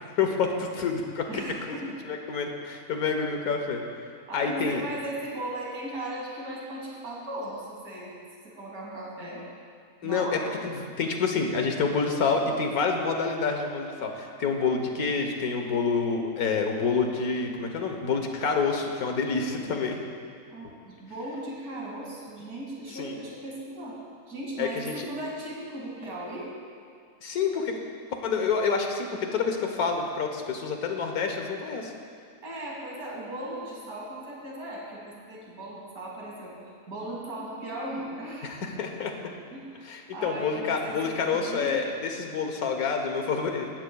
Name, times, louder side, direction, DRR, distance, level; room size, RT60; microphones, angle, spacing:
voice 1, 0.2-1.3 1.7-1.8 2.0-3.8 4.3-4.8 10.0-20.0 22.9-23.1 24.6-25.1 27.2-27.8 28.2-31.9 38.5-39.1 39.8-43.7, left 5 dB, 85° left, 3 dB, 1.6 m, -28 dB
voice 2, 1.3-1.9 4.3-8.1 8.4-9.4 10.0-10.4 20.5-24.0 24.3-26.5 32.4-36.6 36.9-38.5 39.5-41.7, right 1 dB, 90° right, -4 dB, 2.8 m, -37 dB
17.5 x 12.5 x 2.3 m, 2.2 s
omnidirectional pair, 1.5 m